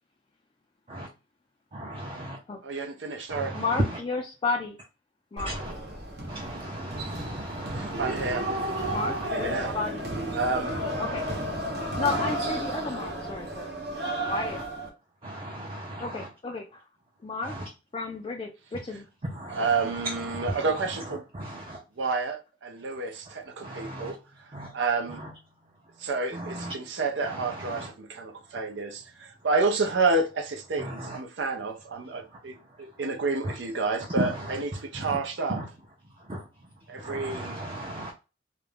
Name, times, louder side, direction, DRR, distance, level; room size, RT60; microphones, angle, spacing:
voice 1, 1.7-2.4 3.3-4.0 5.4-5.7 6.3-9.3 11.0-11.3 12.2-12.3 14.2-14.6 15.2-16.3 17.4-17.7 19.2-21.8 23.3-23.4 23.6-24.1 24.5-24.7 25.1-25.3 26.3-26.7 27.2-27.9 30.8-31.2 33.4-33.6 34.2-34.6 34.9-35.2 35.5-35.7 36.2-36.5 37.0-38.1, right 1 dB, 30° right, 0.5 m, -36 dB
voice 2, 2.6-3.5 7.7-8.5 9.2-9.8 10.3-10.8 19.5-21.2 22.0-24.2 24.7-25.2 26.0-35.6 36.9-37.6, right 3 dB, 90° right, 0.6 m, -29 dB
voice 3, 3.5-4.8 5.3-5.5 8.9-10.0 11.0-11.2 12.0-13.7 14.3-14.6 16.0-16.8 17.2-17.5 17.9-19.1, left 3 dB, 30° left, 0.3 m, -32 dB
sound 1, 5.4-14.9, right 1 dB, 60° right, 0.8 m, -32 dB
2.4 x 2.2 x 3.2 m
head